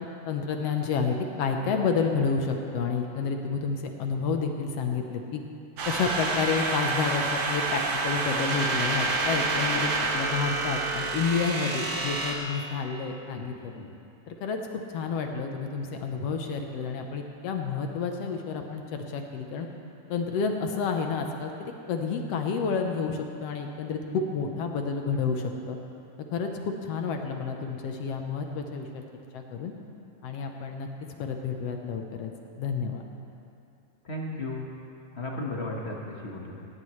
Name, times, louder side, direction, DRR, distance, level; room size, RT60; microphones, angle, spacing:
voice 1, 0.0-5.4 5.9-13.7 14.3-19.7 20.1-25.8 26.3-29.0 29.3-29.7 30.2-30.9 31.2-32.3 32.6-33.0, left 5 dB, 65° left, 3 dB, 1.8 m, -30 dB
sound 1, 5.8-12.3, right 3 dB, 70° right, 2.7 m, -28 dB
voice 2, 34.0-34.7 35.1-36.6, left 2 dB, 35° left, -2 dB, 1.0 m, -34 dB
18.0 x 16.5 x 3.2 m, 2.7 s
omnidirectional pair, 3.3 m